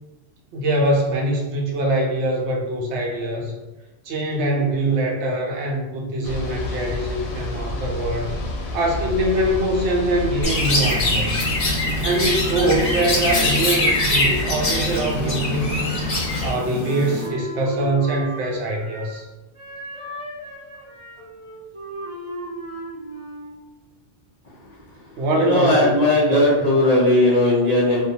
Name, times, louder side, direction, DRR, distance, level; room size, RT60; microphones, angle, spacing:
voice 1, 0.5-3.5 4.0-8.3 8.7-11.4 12.0-15.9 16.4-19.3 25.2-26.0 26.3-26.7, right 1 dB, 75° right, 0 dB, 0.8 m, -23 dB
sound 1, 6.2-16.5, left 2 dB, 90° left, 0.9 m, -30 dB
Chirp tweet, 10.4-17.3, left 1 dB, 45° left, 0.7 m, -23 dB
Wind instrument woodwind instrument, 16.8-19.2 19.5-23.6, right 1 dB, 35° right, 0.5 m, -35 dB
voice 2, 25.3-28.0, left 1 dB, 70° left, -5 dB, 0.3 m, -17 dB
2.4 x 2.1 x 2.7 m, 1.1 s
omnidirectional pair, 1.2 m